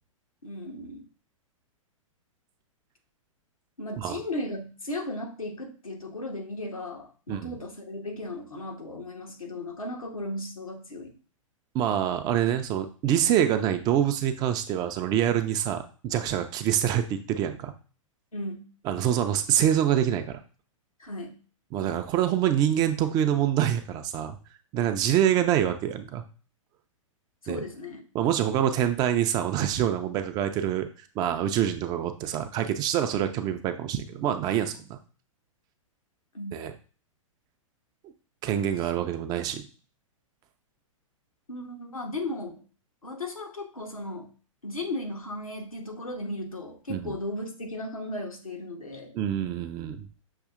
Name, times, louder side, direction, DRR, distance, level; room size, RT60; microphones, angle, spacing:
voice 1, 0.4-1.0 3.8-11.1 18.3-18.6 21.0-21.4 27.4-28.0 36.3-36.6 41.5-42.6 43.0-44.3 44.6-49.1, left 1 dB, 90° left, 1 dB, 1.0 m, -36 dB
voice 2, 11.7-17.7 18.9-20.4 21.7-24.4 24.7-26.2 27.5-27.6 28.1-30.9 31.2-35.0 36.5-36.7 38.4-39.7 46.9-47.1 49.1-50.1, right 10 dB, 25° right, 8 dB, 0.3 m, -26 dB
6.4 x 2.7 x 2.4 m, 0.37 s
figure-of-eight pair, 110°, 17 cm